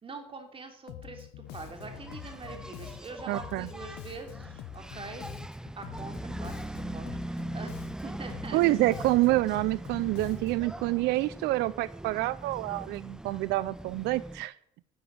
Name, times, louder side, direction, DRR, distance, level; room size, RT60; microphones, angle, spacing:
voice 1, 0.0-5.2 5.6-8.6, right 4 dB, 35° right, 5 dB, 3.0 m, -44 dB
Bass guitar, 0.9-10.8, left 15 dB, 90° left, 0.6 m, -46 dB
Engine, 1.5-14.5, right 1 dB, 5° right, 0.4 m, -41 dB
voice 2, 3.3-3.7 8.5-14.5, right 18 dB, 85° right, 18 dB, 0.4 m, -27 dB
11.5 x 6.9 x 9.4 m, 0.74 s
cardioid pair, 110°, 17 cm